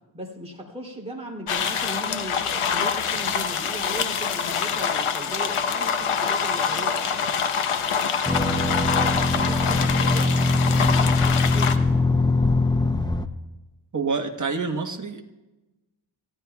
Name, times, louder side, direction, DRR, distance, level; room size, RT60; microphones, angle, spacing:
voice 1, 0.1-7.3 8.2-11.9, equal, 10° right, -2 dB, 3.0 m, -37 dB
sound 1, 1.5-11.8, left 6 dB, 80° left, 1.0 m, -25 dB
sound 2, 8.3-13.3, left 2 dB, 10° left, 0.6 m, -22 dB
voice 2, 13.9-15.2, right 4 dB, 35° right, 4 dB, 1.4 m, -27 dB
28.5 x 15.0 x 2.3 m, 1.1 s
wide cardioid pair, 100°, 50 cm